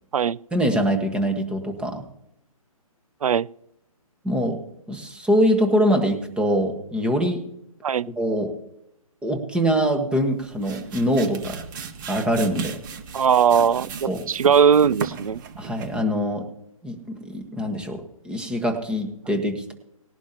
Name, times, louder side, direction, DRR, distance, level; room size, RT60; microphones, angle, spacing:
voice 1, 0.5-2.0 4.2-4.6 4.9-7.4 8.2-8.5 9.2-11.6 12.1-12.8 14.1-14.2 15.6-16.5 16.8-19.7, equal, 5° right, 5 dB, 1.4 m, -23 dB
sound 1, 10.2-16.1, right 7 dB, 35° right, 1.5 m, -36 dB
voice 2, 13.1-15.4, right 7 dB, 70° right, 22 dB, 0.5 m, -19 dB
19.0 x 11.0 x 2.9 m, 0.76 s
hypercardioid pair, 150°, 18 cm